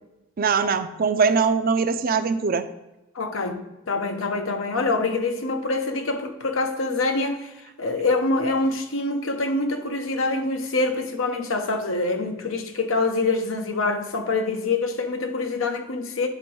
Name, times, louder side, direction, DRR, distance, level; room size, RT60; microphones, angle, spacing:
voice 1, 0.4-2.6, right 5 dB, 45° right, 0.5 m, -21 dB
voice 2, 3.1-3.6 3.9-16.3, left 3 dB, 90° left, 0.9 m, -25 dB
9.9 x 3.5 x 4.6 m
head